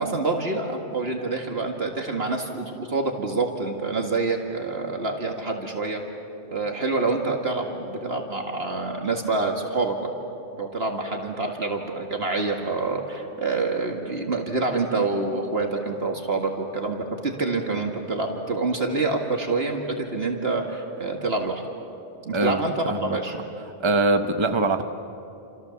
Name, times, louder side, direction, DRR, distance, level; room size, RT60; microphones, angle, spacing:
voice 1, 0.0-6.0 6.5-10.1 10.6-21.6 22.3-23.3, right 3 dB, 60° right, 2 dB, 2.2 m, -27 dB
voice 2, 22.3-23.2 23.8-24.8, right 2 dB, 25° right, 7 dB, 1.1 m, -23 dB
30.0 x 27.5 x 7.2 m, 2.7 s
omnidirectional pair, 1.2 m